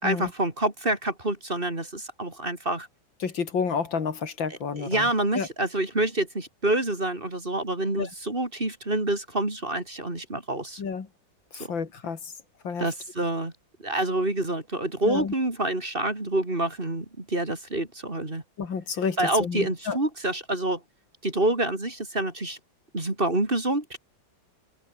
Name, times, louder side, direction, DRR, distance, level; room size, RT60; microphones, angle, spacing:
voice 1, 0.0-2.9 4.5-10.8 12.8-13.5 13.8-18.4 19.2-20.8 21.2-22.6 22.9-24.0, right 1 dB, 25° right, 3.8 m, -27 dB
voice 2, 3.2-5.1 5.3-5.5 8.0-8.1 10.8-11.1 11.6-12.2 12.6-12.8 15.0-15.3 18.6-20.0, left 6 dB, 75° left, 3.2 m, -30 dB
omnidirectional pair, 2.1 m